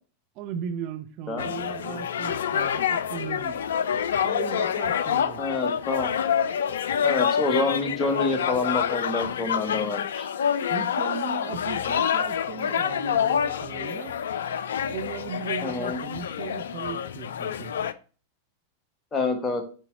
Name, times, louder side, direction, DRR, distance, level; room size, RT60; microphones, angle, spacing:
voice 1, 0.4-3.6 4.2-5.5 10.7-14.2 14.9-17.7, right 9 dB, 40° right, 0.4 m, -37 dB
sound 1, 1.4-17.9, left 8 dB, 65° left, 0.3 m, -27 dB
voice 2, 5.4-6.1 7.0-10.3 15.6-16.0 19.1-19.6, left 3 dB, 20° left, 1.3 m, -27 dB
7.7 x 4.4 x 2.8 m
figure-of-eight pair, 90°, 0 cm